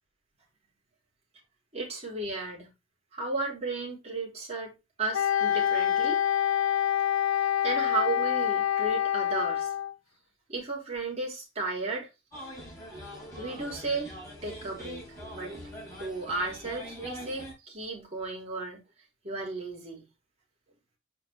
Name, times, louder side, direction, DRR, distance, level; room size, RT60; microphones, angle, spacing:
voice 1, 1.7-2.7 3.1-4.7 5.0-6.2 7.4-9.7 10.5-12.1 13.4-14.1 14.4-15.0 15.3-15.7 16.0-18.8 19.2-20.0, right 3 dB, 30° right, 3.2 m, -34 dB
Wind instrument woodwind instrument, 5.1-9.9, left 10 dB, 80° left, 0.5 m, -26 dB
sound 1, 12.3-17.5, equal, 15° left, 3.7 m, -43 dB
7.0 x 4.9 x 3.2 m
head